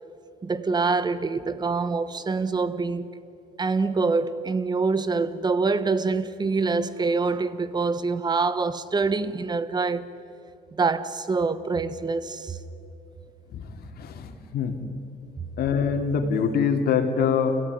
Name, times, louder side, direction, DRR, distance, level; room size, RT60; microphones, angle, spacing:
voice 1, 0.4-3.1 3.6-10.1 10.8-12.6, right 4 dB, 25° right, 1.3 m, -25 dB
voice 2, 13.5-14.8 15.6-17.6, left 6 dB, 65° left, 3.0 m, -24 dB
29.0 x 17.0 x 9.9 m
cardioid pair, 110°, 17 cm